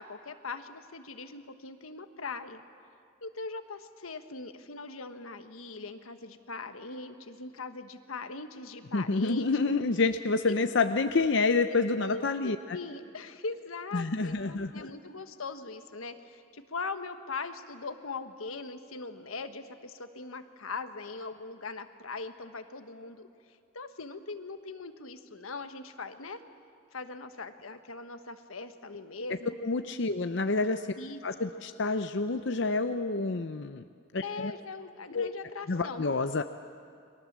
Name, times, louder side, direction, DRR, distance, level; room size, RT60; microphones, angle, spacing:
voice 1, 0.0-2.6 3.2-9.5 11.7-23.3 23.7-26.4 26.9-29.6 31.0-31.2 31.5-31.6 34.2-36.0, left 3 dB, 90° left, 8 dB, 1.4 m, -41 dB
voice 2, 8.9-12.8 13.9-14.9 29.6-30.9 31.2-33.8 34.1-34.5 35.1-35.3 35.7-36.4, left 3 dB, 60° left, 8 dB, 0.7 m, -28 dB
30.0 x 22.5 x 7.4 m, 2.4 s
head